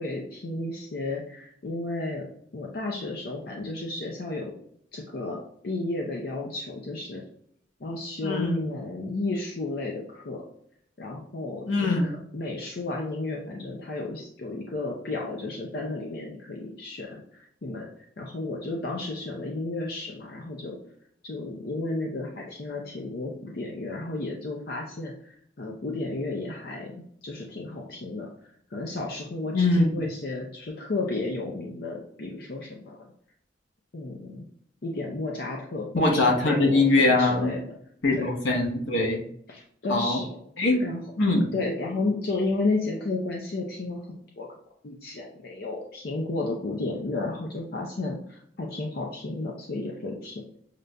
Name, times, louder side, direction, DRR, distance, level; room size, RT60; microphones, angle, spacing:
voice 1, 0.0-2.3 2.5-4.5 4.9-5.4 5.6-7.2 7.8-10.4 11.0-12.0 12.3-17.9 18.2-20.8 21.2-28.3 28.7-33.1 33.9-34.4 34.8-37.6 38.1-38.3 39.5-40.3 40.8-41.0 41.5-44.0 44.4-44.5 44.8-50.4, left 2 dB, 55° left, -1 dB, 0.6 m, -32 dB
voice 2, 8.2-8.6 11.7-12.1 29.5-29.9 35.9-37.6 38.0-39.2 39.9-40.2 40.6-40.9 41.2-41.5, left 2 dB, 80° left, 0 dB, 1.1 m, -22 dB
6.5 x 2.5 x 2.2 m, 0.67 s
head